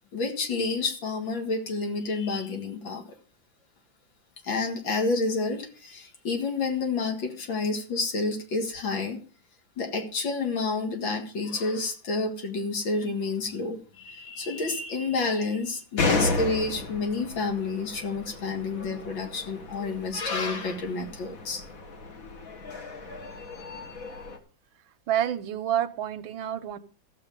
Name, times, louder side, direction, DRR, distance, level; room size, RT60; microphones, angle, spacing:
voice 1, 0.1-3.2 4.4-9.2 9.8-21.6, left 3 dB, 75° left, 4 dB, 2.6 m, -29 dB
sound 1, 16.0-24.4, left 3 dB, 50° left, 1.6 m, -33 dB
voice 2, 25.1-26.8, right 11 dB, 85° right, 12 dB, 1.6 m, -28 dB
14.5 x 6.9 x 5.2 m, 0.40 s
omnidirectional pair, 2.1 m